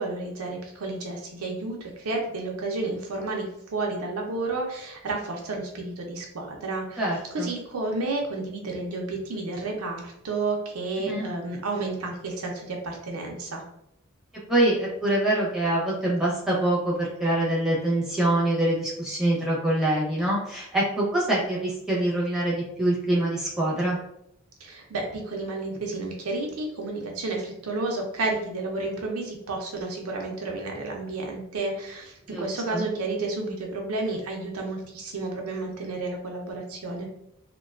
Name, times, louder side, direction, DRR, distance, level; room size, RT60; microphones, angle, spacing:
voice 1, 0.0-7.1 7.3-13.6 24.6-37.1, right 3 dB, 75° right, 1 dB, 0.5 m, -31 dB
voice 2, 7.0-7.5 11.0-11.3 14.3-24.0 32.3-32.9, right 1 dB, ahead, -6 dB, 0.6 m, -25 dB
2.5 x 2.2 x 2.3 m, 0.77 s
head